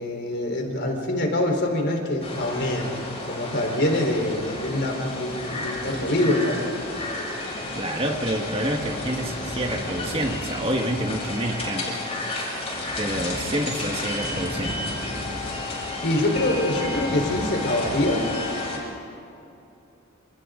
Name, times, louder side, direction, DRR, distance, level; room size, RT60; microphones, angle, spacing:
voice 1, 0.0-2.9 3.3-6.7 16.0-18.3, left 1 dB, 55° left, 2 dB, 4.2 m, -25 dB
sound 1, 2.2-18.8, left 2 dB, 25° left, 7.1 m, -31 dB
voice 2, 7.8-12.0 13.0-14.8, right 1 dB, 25° right, 2 dB, 1.7 m, -28 dB
29.0 x 28.5 x 3.9 m, 2.7 s
head